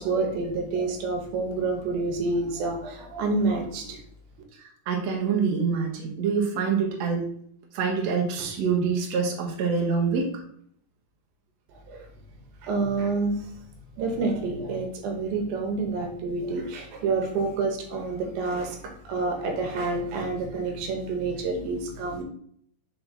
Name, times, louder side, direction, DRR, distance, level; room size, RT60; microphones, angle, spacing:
voice 1, 0.0-4.0 11.9-12.1 12.6-13.5 14.0-22.2, right 3 dB, 90° right, 3 dB, 2.8 m, -28 dB
voice 2, 4.9-7.3 7.7-10.3, right 5 dB, 60° right, -1 dB, 2.0 m, -25 dB
5.8 x 4.3 x 4.1 m, 0.65 s
omnidirectional pair, 4.1 m